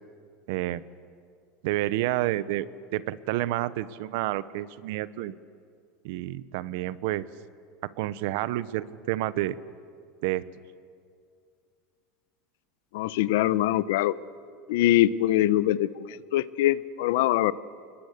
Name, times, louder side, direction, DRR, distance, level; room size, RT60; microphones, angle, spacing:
voice 1, 0.5-0.8 1.6-5.3 6.0-7.3 7.8-9.6 10.2-10.5, right 15 dB, 65° right, 16 dB, 0.8 m, -29 dB
voice 2, 12.9-14.1 14.7-17.5, left 14 dB, 70° left, 16 dB, 0.8 m, -23 dB
28.5 x 20.5 x 8.2 m, 2.2 s
supercardioid pair, 170°, 0 cm